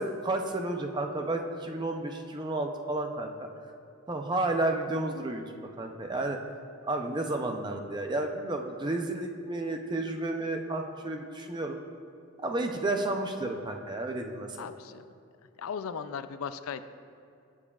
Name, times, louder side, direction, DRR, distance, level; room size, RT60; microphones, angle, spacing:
voice 1, 0.0-3.5 4.1-6.4 6.8-11.8 12.4-14.7, right 2 dB, 20° right, 4 dB, 0.5 m, -32 dB
voice 2, 14.6-15.0 15.6-16.8, left 6 dB, 80° left, 11 dB, 0.4 m, -37 dB
17.0 x 7.2 x 2.4 m, 2.5 s
head